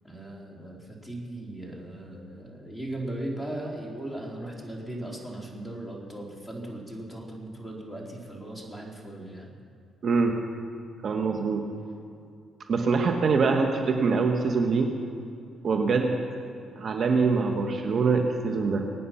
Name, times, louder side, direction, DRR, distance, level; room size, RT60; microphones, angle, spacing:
voice 1, 0.0-9.5, right 1 dB, ahead, -2 dB, 3.3 m, -38 dB
voice 2, 10.0-10.4 11.0-11.6 12.7-14.9 15.6-16.2 16.8-18.9, right 4 dB, 55° right, 3 dB, 1.4 m, -24 dB
24.0 x 9.4 x 5.8 m, 2.4 s
cardioid pair, 90°, 0 cm